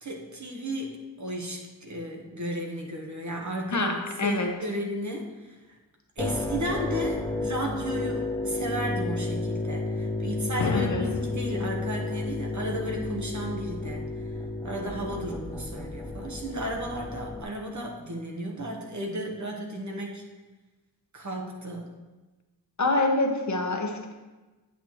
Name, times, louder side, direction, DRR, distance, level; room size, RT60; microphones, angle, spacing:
voice 1, 0.0-5.6 6.2-14.1 14.6-20.2 21.1-21.9, right 1 dB, 45° right, 1 dB, 1.2 m, -34 dB
voice 2, 3.7-4.5 10.7-11.0 22.8-24.1, left 2 dB, 45° left, 3 dB, 1.0 m, -26 dB
sound 1, 6.2-17.4, left 2 dB, 5° left, 0.5 m, -32 dB
sound 2, 10.6-11.6, left 5 dB, 65° left, 0.6 m, -31 dB
8.2 x 8.0 x 3.0 m, 1.2 s
wide cardioid pair, 130°, 40 cm